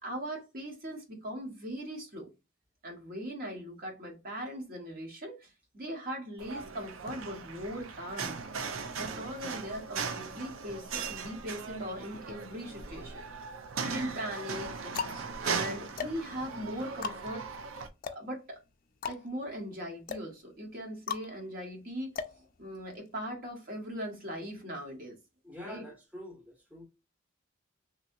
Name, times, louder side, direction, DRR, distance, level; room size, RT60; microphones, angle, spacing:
voice 1, 0.0-2.3 2.8-8.4 8.9-13.2 13.8-17.4 18.1-18.6 19.1-22.2 22.6-25.2 25.6-25.8, equal, 45° right, 1.1 m, -40 dB
sound 1, 6.4-17.9, right 5 dB, 85° right, 0.5 m, -38 dB
sound 2, 13.0-13.7 14.4-23.1, left 6 dB, 45° left, 0.4 m, -41 dB
voice 2, 25.4-26.9, left 1 dB, 5° right, 0.8 m, -46 dB
3.1 x 2.7 x 2.6 m
head